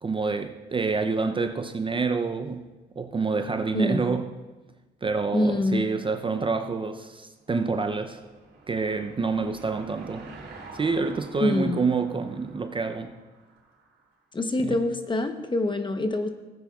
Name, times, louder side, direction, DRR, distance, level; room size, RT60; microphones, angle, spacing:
voice 1, 0.0-2.7 3.0-4.3 5.0-8.2 8.7-10.3 10.7-13.2 14.6-14.8, right 4 dB, 25° right, 0.5 m, -27 dB
voice 2, 3.7-4.2 5.3-5.9 11.4-11.8 14.3-16.3, left 2 dB, 25° left, 0.9 m, -25 dB
Car passing by / Engine, 7.2-14.0, right 3 dB, 75° right, 3.0 m, -48 dB
16.5 x 8.8 x 2.4 m
cardioid pair, 90°, 20 cm